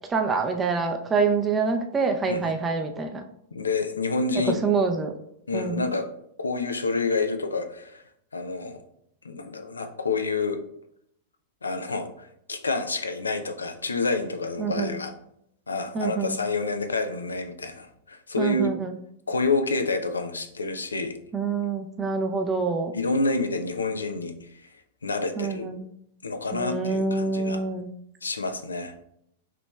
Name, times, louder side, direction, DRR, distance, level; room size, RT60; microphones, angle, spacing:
voice 1, 0.1-3.3 4.5-5.1 5.5-5.9 14.6-15.0 15.9-16.4 18.4-19.0 21.3-23.0 25.4-25.9 26.5-27.9, right 4 dB, 20° right, 6 dB, 0.5 m, -26 dB
voice 2, 3.5-4.6 5.5-6.0 6.4-8.0 8.3-8.8 9.2-10.6 11.6-15.1 15.7-18.7 19.3-21.2 22.9-24.7 25.0-25.7 26.2-27.6 28.2-28.9, left 3 dB, 85° left, 7 dB, 0.4 m, -28 dB
5.9 x 3.0 x 2.3 m, 0.75 s
figure-of-eight pair, 100°, 0 cm